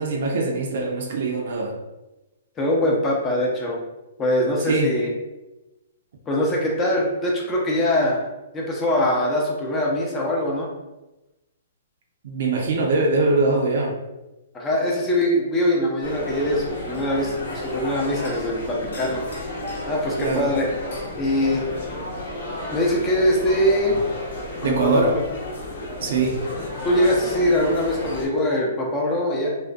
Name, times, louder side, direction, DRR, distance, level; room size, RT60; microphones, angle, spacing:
voice 1, 0.0-1.7 4.6-4.9 12.2-13.9 20.2-20.5 24.6-25.1 26.0-26.4, right 3 dB, 65° right, 1 dB, 0.5 m, -22 dB
voice 2, 2.6-3.8 4.2-5.1 6.3-8.2 8.5-10.7 14.5-19.2 19.9-20.8 21.2-21.7 22.7-24.0 24.6-25.2 26.8-29.5, left 1 dB, 20° left, -2 dB, 0.4 m, -22 dB
sound 1, 16.0-28.3, left 1 dB, 80° left, 0.9 m, -32 dB
2.4 x 2.1 x 2.5 m, 1.0 s
hypercardioid pair, 145°, 0 cm